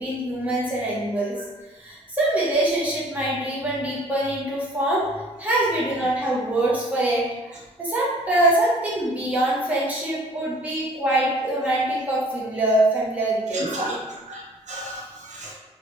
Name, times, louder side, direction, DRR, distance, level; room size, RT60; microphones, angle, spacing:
voice 1, 0.0-1.4 1.8-5.1 5.4-14.0, right 1 dB, 10° right, -6 dB, 0.7 m, -24 dB
voice 2, 13.5-15.5, right 1 dB, 85° right, -4 dB, 0.6 m, -33 dB
3.0 x 2.1 x 3.0 m, 1.1 s
wide cardioid pair, 165°, 12 cm